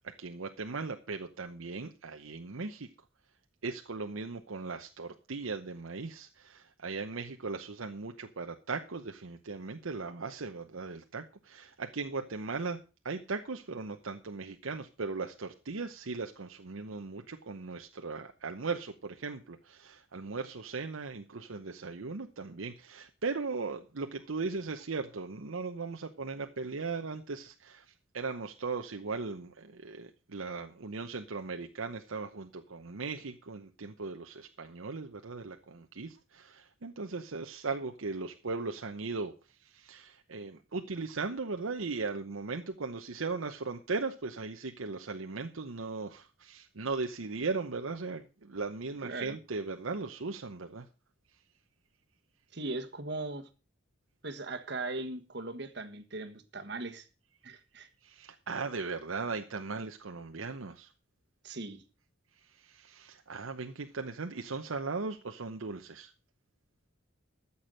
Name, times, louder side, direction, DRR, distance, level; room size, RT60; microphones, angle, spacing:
voice 1, 0.0-2.9 3.6-12.8 13.0-27.8 28.1-39.3 39.6-50.9 58.0-60.9 62.4-66.1, right 4 dB, 85° right, 5 dB, 0.8 m, -38 dB
voice 2, 49.0-49.4 52.5-53.5 54.2-57.1 57.4-57.9 61.4-61.8, right 2 dB, 55° right, 8 dB, 1.4 m, -39 dB
13.5 x 7.1 x 6.4 m, 0.33 s
head